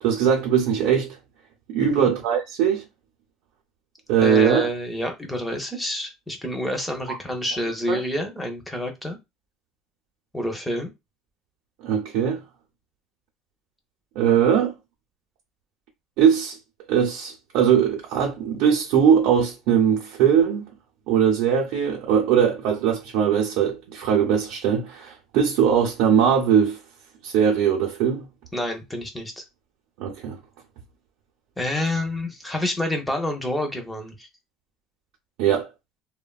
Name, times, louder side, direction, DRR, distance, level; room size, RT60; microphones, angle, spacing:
voice 1, 0.0-1.2 1.7-2.8 4.1-4.7 7.1-7.2 7.9-8.0 11.8-12.4 14.2-14.7 16.2-16.6 16.9-20.7 21.1-26.8 27.2-28.3 30.0-30.4 35.4-35.7, right 8 dB, 65° right, 0.6 m, -20 dB
voice 2, 1.8-2.1 4.2-9.2 10.3-10.9 28.5-29.4 31.6-34.3, left 1 dB, 5° left, 0.6 m, -28 dB
3.1 x 2.1 x 2.3 m
cardioid pair, 155°, 0 cm